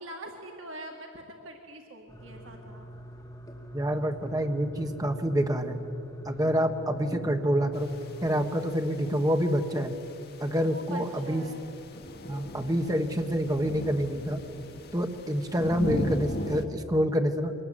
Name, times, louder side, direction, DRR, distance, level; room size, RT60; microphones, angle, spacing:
voice 1, 0.0-2.9 6.3-6.5 10.5-11.6, right 1 dB, 65° right, 2 dB, 1.9 m, -44 dB
sound 1, 2.1-8.5, equal, 15° left, 2.5 m, -43 dB
voice 2, 3.7-5.9 6.2-7.9 8.2-9.9 10.4-11.4 12.3-14.4 14.9-17.5, equal, 15° right, 5 dB, 1.5 m, -27 dB
sound 2, 7.7-16.7, left 1 dB, 50° left, 1.8 m, -39 dB
24.5 x 20.0 x 9.2 m, 2.9 s
head